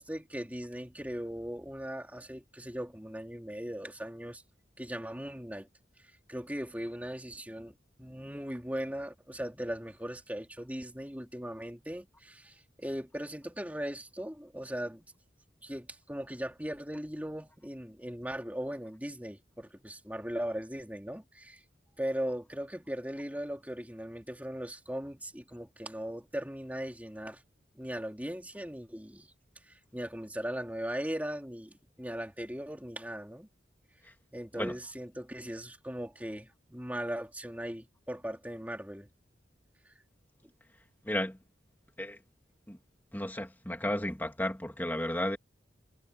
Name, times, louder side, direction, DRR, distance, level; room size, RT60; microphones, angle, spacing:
voice 1, 0.0-4.4 4.8-5.7 6.3-15.0 15.6-21.6 22.0-27.4 27.7-29.3 29.7-33.5 34.3-39.1, equal, 10° right, 3.4 m, -39 dB
voice 2, 41.0-41.4 42.0-42.2 42.7-42.8 43.1-45.4, left 1 dB, 10° left, 2.3 m, -33 dB
head